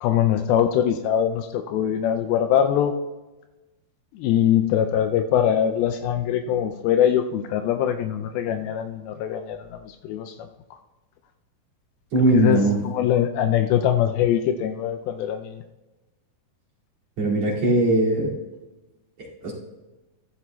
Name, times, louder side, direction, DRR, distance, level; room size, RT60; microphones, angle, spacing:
voice 1, 0.0-2.9 4.1-10.3 12.3-15.6, left 10 dB, 85° left, 7 dB, 2.4 m, -22 dB
voice 2, 12.1-12.8 17.2-18.3 19.2-19.5, right 1 dB, 45° right, -6 dB, 3.4 m, -20 dB
14.5 x 13.5 x 2.3 m, 1.1 s
omnidirectional pair, 4.3 m